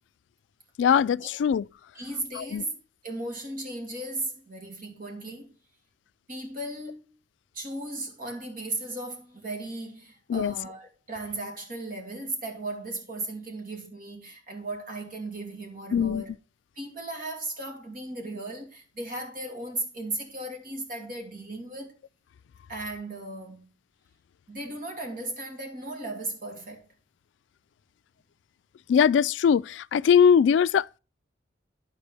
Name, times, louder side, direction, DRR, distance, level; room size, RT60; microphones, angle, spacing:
voice 1, 0.8-1.6 2.4-2.6 10.3-10.5 15.9-16.2 28.9-31.0, left 7 dB, 75° left, 0.3 m, -21 dB
voice 2, 1.9-5.5 6.3-7.1 7.5-16.3 16.8-21.9 22.7-23.7 24.5-26.9, right 2 dB, 50° right, 2.6 m, -36 dB
12.5 x 5.2 x 3.4 m
head